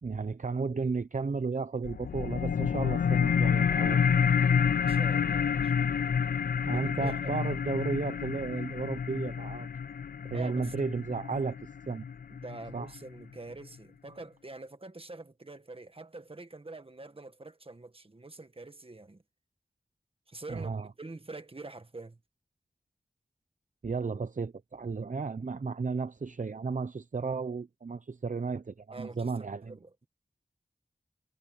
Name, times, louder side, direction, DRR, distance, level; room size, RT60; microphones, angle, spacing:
voice 1, 0.0-4.1 6.6-9.7 10.2-12.0 12.7-12.9 20.5-20.9 23.8-29.8, right 4 dB, 60° right, 0.7 m, -34 dB
sound 1, 1.8-12.8, left 7 dB, 80° left, 0.4 m, -28 dB
voice 2, 4.8-5.7 6.7-7.3 10.3-10.7 12.3-19.2 20.3-22.2 28.9-29.3 29.6-30.1, right 2 dB, 40° right, 1.7 m, -45 dB
wide cardioid pair, 60°, 15 cm